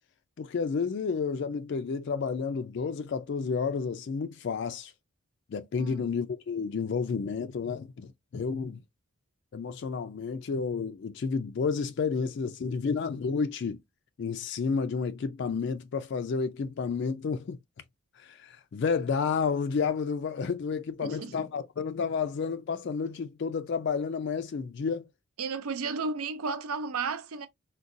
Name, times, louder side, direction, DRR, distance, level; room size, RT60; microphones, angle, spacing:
voice 1, 0.4-4.9 5.5-8.8 9.5-13.8 14.2-17.6 18.2-25.1, left 5 dB, 50° left, 0.3 m, -31 dB
voice 2, 21.0-21.3 25.4-27.5, right 4 dB, 80° right, 0.5 m, -33 dB
3.8 x 2.2 x 2.5 m
head